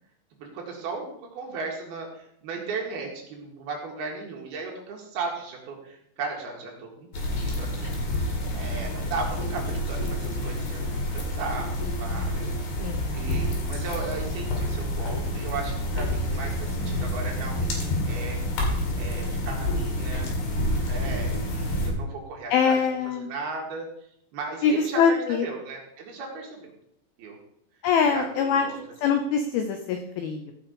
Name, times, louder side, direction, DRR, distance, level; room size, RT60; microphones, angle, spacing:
voice 1, 0.4-7.9 8.5-12.5 13.1-18.4 18.9-20.3 20.8-22.8 23.2-23.9 24.3-26.7 27.2-27.4 28.1-28.8, right 4 dB, 60° right, 0 dB, 3.4 m, -36 dB
sound 1, 7.1-21.9, left 1 dB, 60° left, 4.3 m, -28 dB
voice 2, 12.8-13.1 22.5-23.3 24.6-25.5 27.8-28.7 29.0-30.5, left 6 dB, 85° left, 6 dB, 2.1 m, -23 dB
15.0 x 5.9 x 5.3 m, 0.74 s
omnidirectional pair, 5.4 m